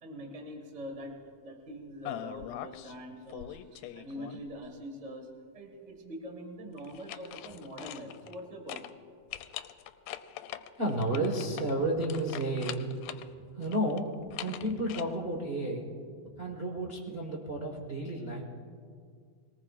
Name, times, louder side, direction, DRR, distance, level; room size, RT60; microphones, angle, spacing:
voice 1, 0.0-8.9, equal, 20° right, 2 dB, 1.1 m, -44 dB
sound 1, 2.0-2.9 3.3-4.6 6.8-8.4 8.7-8.9 9.3-13.3 13.6-15.0, left 12 dB, 90° left, 2.1 m, -42 dB
voice 2, 10.8-12.8 13.6-14.1 14.4-15.9 16.4-18.4, right 1 dB, 60° right, -3 dB, 0.6 m, -31 dB
22.5 x 18.5 x 2.5 m, 2.1 s
omnidirectional pair, 3.6 m